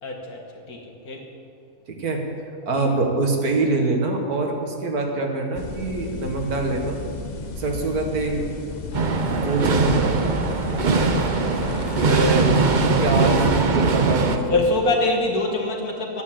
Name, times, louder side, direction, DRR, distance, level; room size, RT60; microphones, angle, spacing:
voice 1, 0.0-0.4 0.7-1.2 14.5-16.2, left 2 dB, 75° left, 0 dB, 2.2 m, -24 dB
voice 2, 2.6-7.0 7.6-8.6 9.3-10.3 10.8-11.2 12.0-12.5 13.0-14.6, right 2 dB, 80° right, 2 dB, 2.0 m, -24 dB
sound 1, 5.5-13.6, left 3 dB, 40° left, 0.7 m, -33 dB
sound 2, 8.9-14.4, right 4 dB, 40° right, 0.7 m, -21 dB
11.0 x 9.1 x 7.5 m, 2.5 s
omnidirectional pair, 1.6 m